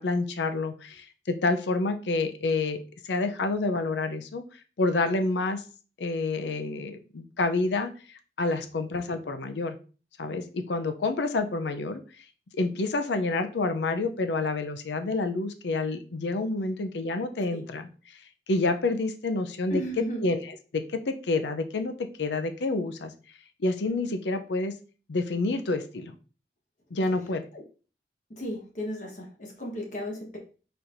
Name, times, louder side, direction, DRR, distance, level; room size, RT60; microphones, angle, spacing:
voice 1, 0.0-4.4 4.8-5.6 6.0-9.7 10.2-12.0 12.5-18.2 18.5-20.4 20.7-21.9 22.2-23.1 23.6-24.7 25.1-26.1 26.9-27.4, left 3 dB, 80° left, 8 dB, 0.5 m, -28 dB
voice 2, 19.7-20.2 27.5-27.6 28.3-30.4, equal, 45° left, 1 dB, 1.1 m, -35 dB
4.4 x 4.1 x 2.6 m, 0.37 s
head